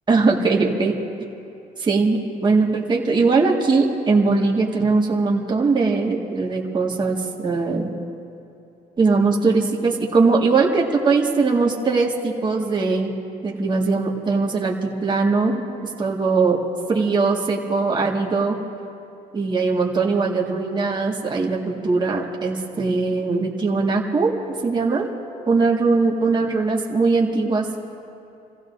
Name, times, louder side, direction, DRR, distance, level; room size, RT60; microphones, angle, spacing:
voice 1, 0.1-1.0 1.8-7.9 9.0-13.1 13.4-15.6 16.0-16.6 16.9-18.6 19.3-24.3 24.6-25.1 25.5-27.9, right 4 dB, 25° right, -1 dB, 1.8 m, -20 dB
30.0 x 15.5 x 2.7 m, 2.7 s
cardioid pair, 110°, 17 cm